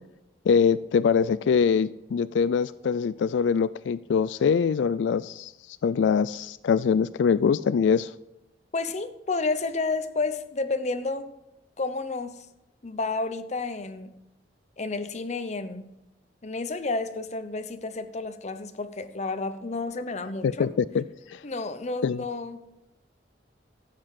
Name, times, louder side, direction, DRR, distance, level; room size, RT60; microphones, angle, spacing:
voice 1, 0.5-8.1 20.4-21.4 22.0-22.2, left 6 dB, 85° left, 16 dB, 0.3 m, -23 dB
voice 2, 8.7-11.3 11.8-12.5 12.8-14.1 14.8-15.9 16.4-20.7 21.4-22.7, left 3 dB, 40° left, 9 dB, 0.7 m, -31 dB
13.0 x 7.9 x 4.8 m, 0.92 s
head